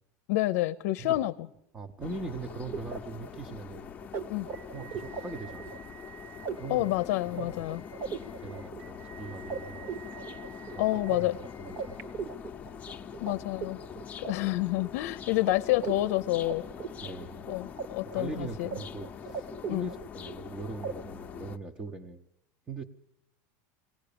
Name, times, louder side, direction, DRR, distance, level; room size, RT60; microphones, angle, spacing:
voice 1, 0.3-1.3 4.3-4.5 6.7-7.8 10.8-11.4 13.2-13.8 14.2-16.6 17.5-18.7 19.7-19.9, left 17 dB, 70° left, 11 dB, 0.6 m, -28 dB
voice 2, 1.7-3.9 4.7-5.8 6.5-6.9 7.3-7.6 8.1-9.9 10.7-11.3 11.6-12.0 17.0-17.5 18.1-22.2 22.7-22.8, right 3 dB, 15° right, 6 dB, 0.8 m, -41 dB
sound 1, 2.0-21.6, left 7 dB, 20° left, 0.8 m, -44 dB
sound 2, 2.2-13.3 13.6-15.1 15.5-15.6 15.8-17.8 18.1-18.8 19.0-20.4 20.8-20.9, right 6 dB, 45° right, 1.4 m, -40 dB
21.5 x 18.5 x 6.9 m, 0.85 s
cardioid pair, 165°, 8 cm